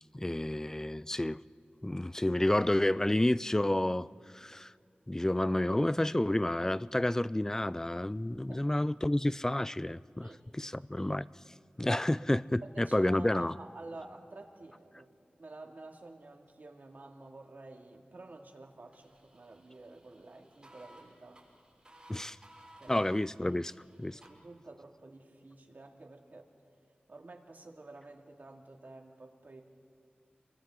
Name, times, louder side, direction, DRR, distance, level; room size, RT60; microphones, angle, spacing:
voice 1, 0.1-1.4 1.8-4.1 4.3-4.7 5.1-11.3 11.8-13.5 22.1-22.4 22.9-23.7 24.0-24.2, left 1 dB, 15° left, 17 dB, 0.4 m, -30 dB
voice 2, 8.5-8.8 10.2-10.7 12.6-21.4 22.8-23.1 24.1-26.5 27.1-29.6, right 2 dB, 60° right, 1 dB, 2.4 m, -50 dB
sound 1, 18.9-24.3, right 1 dB, 25° right, 6.3 m, -59 dB
30.0 x 24.0 x 3.9 m, 2.2 s
wide cardioid pair, 60°, 3 cm